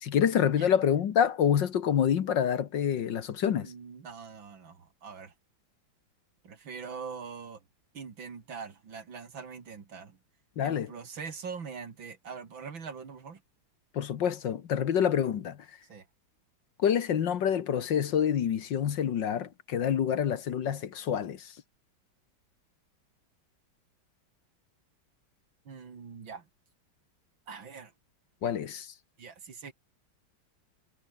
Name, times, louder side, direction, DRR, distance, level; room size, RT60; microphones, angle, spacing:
voice 1, 0.0-3.7 10.6-10.9 13.9-15.7 16.8-21.5 28.4-28.9, left 8 dB, 65° left, 1.9 m, -27 dB
voice 2, 3.6-5.3 6.4-7.6 7.9-10.2 10.6-13.4 15.9-16.1 25.7-26.5 27.5-27.9 28.4-28.5 29.2-29.7, right 5 dB, 70° right, 3.3 m, -43 dB
omnidirectional pair, 2.2 m